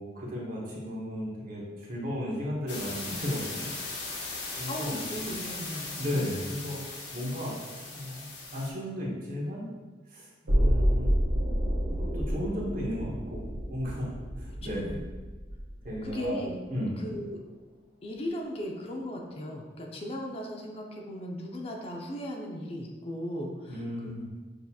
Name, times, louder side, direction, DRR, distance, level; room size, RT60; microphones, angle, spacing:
voice 1, 0.0-3.7 4.6-5.0 6.0-7.6 7.9-9.7 10.1-11.2 11.9-14.1 14.4-15.0 15.8-16.4 16.7-16.9 23.6-24.2, equal, 50° right, -4 dB, 0.9 m, -35 dB
sound 1, 2.7-8.7, left 3 dB, 65° left, 0.8 m, -38 dB
voice 2, 4.7-6.4 14.6-14.9 16.0-16.6 17.0-17.4 18.0-24.1, equal, 30° left, 1 dB, 0.4 m, -37 dB
sound 2, 10.5-16.4 16.8-16.9, equal, 90° right, 1.4 m, -29 dB
6.3 x 2.8 x 2.3 m, 1.3 s
head